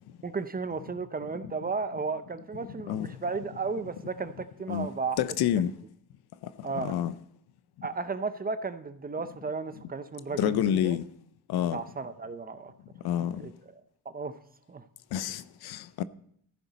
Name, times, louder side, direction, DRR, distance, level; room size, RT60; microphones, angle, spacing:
voice 1, 0.2-5.2 6.6-7.0 7.8-11.0 11.6-12.7 13.3-13.5 14.1-14.3 14.7-14.8, right 4 dB, 20° right, 0.6 m, -34 dB
voice 2, 5.2-5.7 6.7-7.1 10.4-11.0 11.5-11.8 13.0-13.4 15.1-16.0, left 10 dB, 65° left, 0.6 m, -28 dB
14.5 x 10.5 x 4.1 m
cardioid pair, 105°, 40 cm